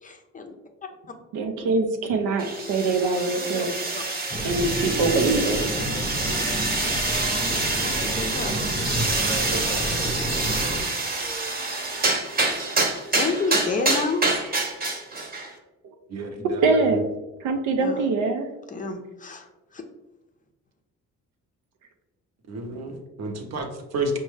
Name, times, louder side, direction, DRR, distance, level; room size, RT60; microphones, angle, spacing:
voice 1, 0.0-0.5 3.3-3.7 3.9-4.0 7.7-8.7 12.9-14.2 17.8-18.1 18.7-19.8, left 3 dB, 25° left, 5 dB, 0.5 m, -30 dB
voice 2, 1.3-3.7 4.4-5.7 9.5-9.8 15.8-15.9 16.6-17.0 17.4-18.5, right 3 dB, 90° right, 6 dB, 0.6 m, -23 dB
sound 1, 2.4-15.5, right 3 dB, 30° right, 0.9 m, -26 dB
sound 2, 4.3-10.8, equal, 5° left, 0.9 m, -31 dB
voice 3, 16.1-16.9 22.5-24.2, right 2 dB, 60° right, 4 dB, 0.8 m, -31 dB
5.2 x 2.2 x 3.2 m, 1.0 s
cardioid pair, 90°, 30 cm